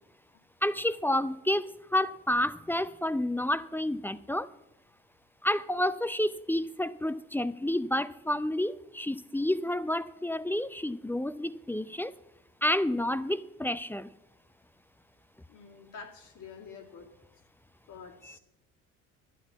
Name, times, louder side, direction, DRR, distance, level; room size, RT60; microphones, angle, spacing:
voice 1, 0.6-4.5 5.4-12.1 12.6-14.1 18.2-18.4, left 1 dB, 5° left, 0.4 m, -30 dB
voice 2, 15.5-17.1 17.9-18.4, left 5 dB, 60° left, 2.2 m, -47 dB
11.5 x 8.3 x 7.2 m
hypercardioid pair, 60°, 35 cm